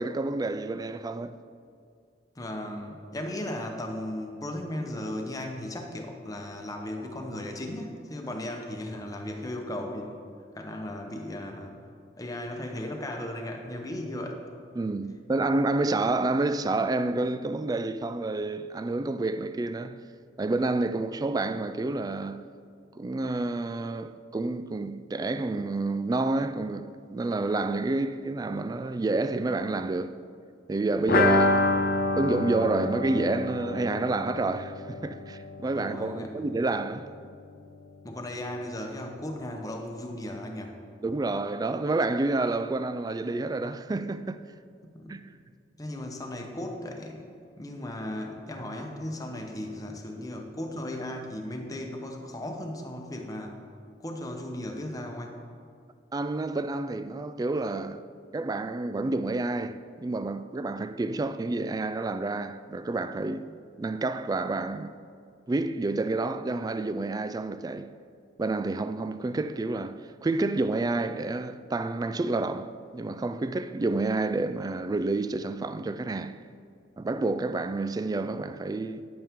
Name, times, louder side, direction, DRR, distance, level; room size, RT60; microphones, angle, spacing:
voice 1, 0.0-1.4 14.8-20.0 20.4-22.4 23.0-30.2 30.7-31.7 32.2-37.1 41.0-44.4 45.1-45.2 56.1-58.0 58.3-63.5 63.8-64.9 65.5-67.9 68.4-76.4 77.0-79.0, right 2 dB, 20° right, 0.3 m, -29 dB
voice 2, 2.3-10.2 10.5-11.8 12.2-14.4 35.7-36.3 38.0-40.8 44.8-45.2 45.8-53.6 54.0-55.4, left 1 dB, 20° left, 0.9 m, -36 dB
sound 1, 31.1-36.7 36.9-37.0 37.3-37.4, left 2 dB, 55° left, 0.7 m, -28 dB
10.0 x 8.6 x 3.6 m
head